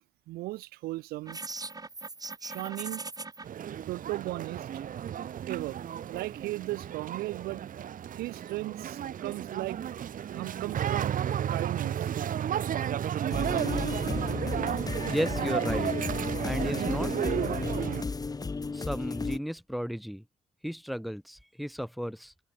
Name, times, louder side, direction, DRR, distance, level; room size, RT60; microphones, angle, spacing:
voice 1, 0.3-1.4 2.4-3.0 3.9-4.7 5.5-5.8 6.1-7.6 8.1-9.8 10.3-11.2 11.5-12.1, right 18 dB, 80° right, 1.2 m, -36 dB
sound 1, 1.3-3.4, right 3 dB, 25° right, 3.1 m, -39 dB
sound 2, 3.4-18.0, right 9 dB, 60° right, 2.4 m, -33 dB
sound 3, 13.3-19.4, left 4 dB, 25° left, 1.0 m, -33 dB
voice 2, 15.1-15.9 16.4-17.1 18.7-20.2 20.6-22.3, equal, ahead, 3.6 m, -34 dB
supercardioid pair, 60°, 16 cm